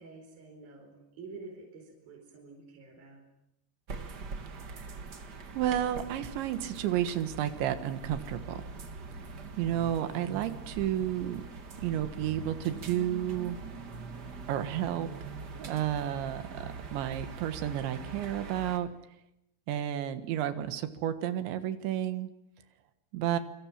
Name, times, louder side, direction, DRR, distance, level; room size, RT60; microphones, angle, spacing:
voice 1, 0.0-3.2, right 3 dB, 55° right, 1 dB, 6.4 m, -48 dB
sound 1, 3.9-18.8, right 4 dB, 75° right, 0.9 m, -43 dB
voice 2, 5.5-8.6 9.6-11.4 11.8-13.6 14.5-15.3 15.6-16.7 16.9-18.9 19.7-22.3 23.1-23.4, right 11 dB, 90° right, 10 dB, 3.9 m, -31 dB
27.0 x 25.5 x 7.4 m, 0.84 s
omnidirectional pair, 5.1 m